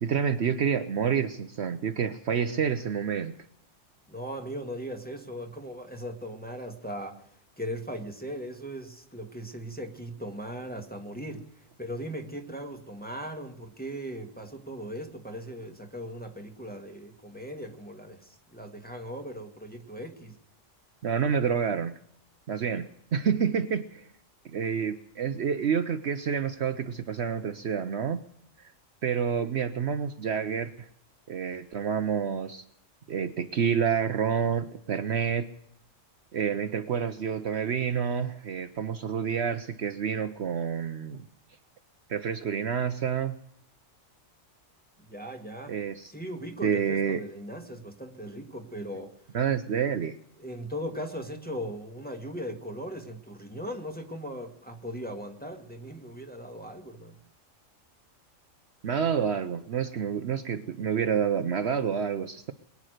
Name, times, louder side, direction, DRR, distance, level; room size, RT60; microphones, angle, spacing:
voice 1, 0.0-3.3 21.0-22.0 22.5-24.1 24.5-28.3 29.0-30.9 31.3-32.6 33.1-35.5 36.3-41.2 42.1-43.4 45.7-46.1 46.6-47.2 49.3-50.2 58.8-62.5, right 7 dB, 60° right, 10 dB, 1.0 m, -28 dB
voice 2, 4.1-7.2 7.6-11.5 11.8-20.4 45.1-45.7 46.1-49.2 50.4-57.2, equal, 5° left, 2 dB, 1.9 m, -38 dB
22.0 x 9.7 x 6.5 m, 0.68 s
omnidirectional pair, 1.3 m